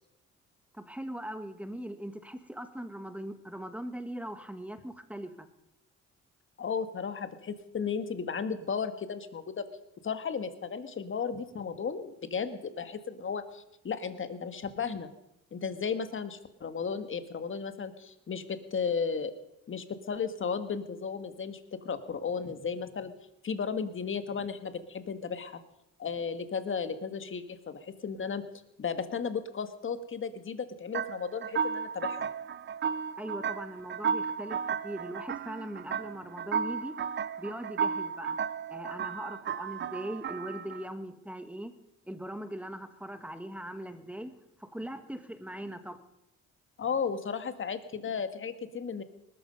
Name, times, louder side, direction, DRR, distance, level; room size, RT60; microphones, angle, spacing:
voice 1, 0.7-5.5 33.2-37.0 37.4-38.4 38.7-41.7 42.0-44.3 44.6-46.0, right 1 dB, 5° right, 9 dB, 1.5 m, -40 dB
voice 2, 6.6-9.7 10.0-15.1 15.5-19.3 19.7-23.1 23.4-25.6 26.0-28.4 28.8-32.3 46.8-49.0, left 6 dB, 40° left, 10 dB, 1.6 m, -34 dB
sound 1, 30.9-40.8, right 7 dB, 40° right, 0.5 m, -34 dB
19.5 x 13.0 x 5.3 m, 0.86 s
cardioid pair, 90°, 30 cm